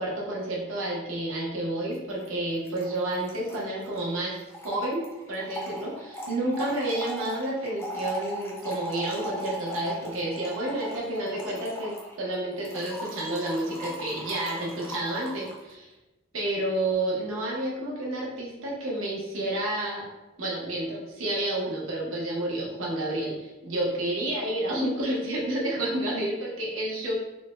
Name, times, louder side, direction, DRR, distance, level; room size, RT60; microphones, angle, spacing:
voice 1, 0.0-4.4 4.6-15.9 16.3-20.1 20.4-27.1, right 1 dB, 75° right, -4 dB, 0.8 m, -30 dB
Trickle dribble / Fill (with liquid), 1.9-2.0 2.2-2.3 2.5-15.6, equal, 10° left, 0.4 m, -38 dB
3.2 x 2.1 x 3.1 m, 1.1 s
head